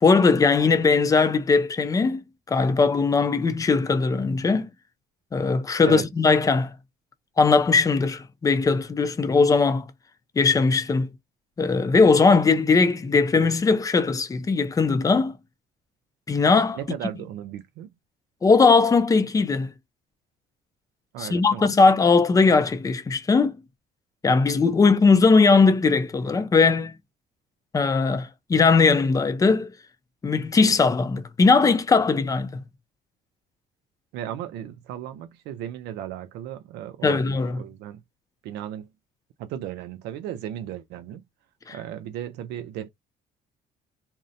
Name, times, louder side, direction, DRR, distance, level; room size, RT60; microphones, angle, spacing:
voice 1, 0.0-2.2 2.5-4.7 5.3-6.7 7.4-9.9 10.4-11.1 11.6-15.3 16.3-16.8 18.4-19.7 21.2-23.5 24.2-27.0 27.7-29.7 30.2-32.6 37.0-37.6 41.7-41.8, left 4 dB, 20° left, 0.5 m, -19 dB
voice 2, 16.7-17.9 21.1-21.8 34.1-38.0 38.4-38.9 39.4-41.2 41.7-42.9, right 11 dB, 80° right, 0.4 m, -35 dB
2.6 x 2.0 x 2.5 m
cardioid pair, 110°, 17 cm